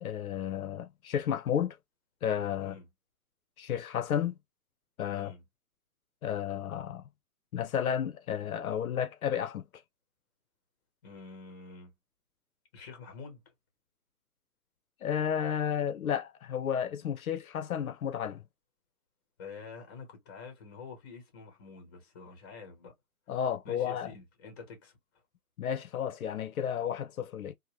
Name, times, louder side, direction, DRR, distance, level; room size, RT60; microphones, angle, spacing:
voice 1, 0.0-1.8 2.2-2.8 3.6-4.4 5.0-5.3 6.2-7.0 7.5-9.6 15.0-18.4 23.3-24.1 25.6-27.5, left 8 dB, 70° left, 0.5 m, -32 dB
voice 2, 11.0-11.9 12.7-13.4 19.4-22.9 23.6-24.9, left 4 dB, 15° left, 0.6 m, -47 dB
2.6 x 2.1 x 2.9 m
hypercardioid pair, 150°, 45 cm